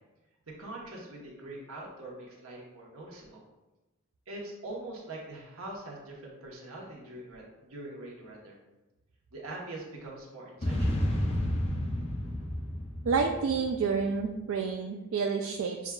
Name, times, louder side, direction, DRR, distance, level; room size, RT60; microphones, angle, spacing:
voice 1, 0.5-3.4 4.3-8.6 9.3-11.1, right 2 dB, 85° right, -3 dB, 1.1 m, -43 dB
sound 1, 10.6-14.1, left 1 dB, 30° left, 0.6 m, -31 dB
voice 2, 13.1-15.9, right 5 dB, 70° right, 2 dB, 0.3 m, -29 dB
7.0 x 2.3 x 2.3 m, 1.1 s
head